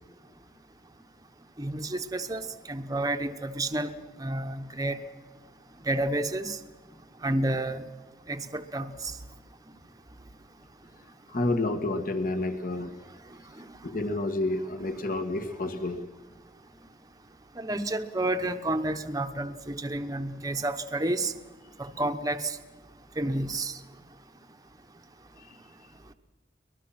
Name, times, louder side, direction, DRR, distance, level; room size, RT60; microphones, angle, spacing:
voice 1, 1.6-3.9 4.2-5.0 5.8-6.6 7.2-7.9 8.3-9.1 13.6-13.7 17.6-21.3 21.8-22.6 23.2-23.8, right 2 dB, 20° right, 7 dB, 1.0 m, -30 dB
voice 2, 11.3-12.9 13.8-16.0, left 2 dB, 50° left, 7 dB, 1.8 m, -29 dB
24.0 x 20.0 x 5.9 m, 1.3 s
head